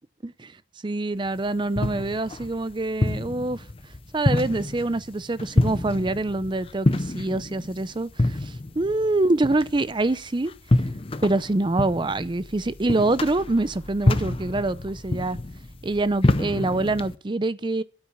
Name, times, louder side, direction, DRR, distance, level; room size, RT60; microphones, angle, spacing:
voice 1, 0.8-3.6 4.1-10.5 11.2-15.4 15.8-17.8, right 2 dB, 25° right, 0.5 m, -25 dB
sound 1, 1.3-17.2, left 2 dB, 30° left, 0.7 m, -27 dB
8.8 x 8.7 x 9.6 m
head